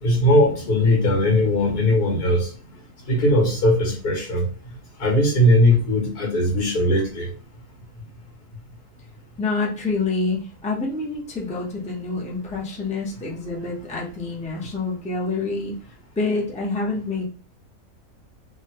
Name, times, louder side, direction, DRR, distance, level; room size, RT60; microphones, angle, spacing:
voice 1, 0.0-2.5 3.1-4.4 5.0-7.3, left 1 dB, 85° left, -1 dB, 2.0 m, -19 dB
voice 2, 9.4-15.8 16.2-17.2, left 3 dB, 5° left, -4 dB, 0.5 m, -27 dB
3.6 x 2.2 x 2.8 m, 0.39 s
omnidirectional pair, 1.6 m